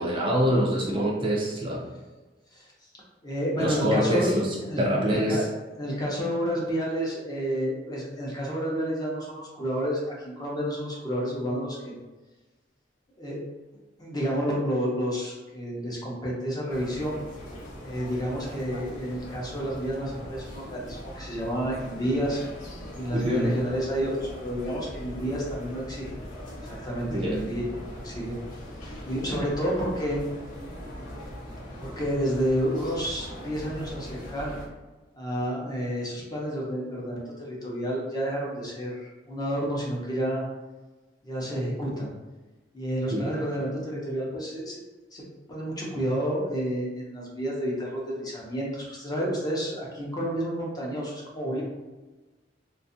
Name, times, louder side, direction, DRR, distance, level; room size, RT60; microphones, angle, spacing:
voice 1, 0.0-1.8 3.6-5.4 23.1-23.5 27.1-27.4 43.1-43.3, equal, 30° right, -3 dB, 0.4 m, -25 dB
voice 2, 3.2-4.3 4.6-5.5 5.8-11.9 13.2-13.4 14.0-17.2 17.8-22.5 23.0-26.1 26.7-28.3 28.8-30.2 31.8-34.5 35.1-40.4 41.2-42.1 42.7-44.8 45.1-51.6, equal, 20° left, -4 dB, 0.6 m, -30 dB
sound 1, 16.7-34.7, equal, 50° left, 0.9 m, -41 dB
2.5 x 2.3 x 2.6 m, 1.2 s
head